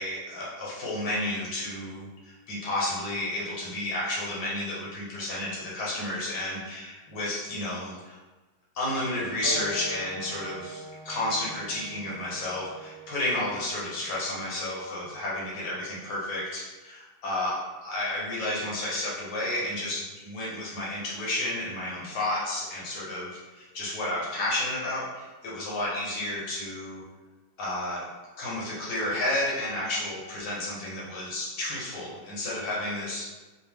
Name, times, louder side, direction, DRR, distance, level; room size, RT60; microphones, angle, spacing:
voice 1, 0.0-8.2 8.8-27.0 27.6-28.0 28.4-33.3, left 1 dB, 75° left, -6 dB, 1.8 m, -31 dB
Wind instrument woodwind instrument, 9.4-14.5, right 2 dB, 85° right, 1.3 m, -42 dB
5.0 x 2.1 x 3.4 m, 1.2 s
omnidirectional pair, 1.9 m